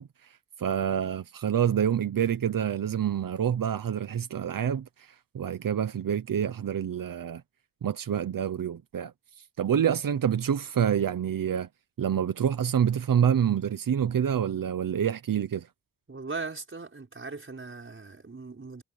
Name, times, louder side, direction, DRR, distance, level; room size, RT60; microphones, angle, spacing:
voice 1, 0.0-7.4 7.8-11.7 12.0-15.7, right 8 dB, 90° right, 0.9 m, -27 dB
voice 2, 16.1-18.8, right 4 dB, 40° right, 5.7 m, -39 dB
wide cardioid pair, 115°, 33 cm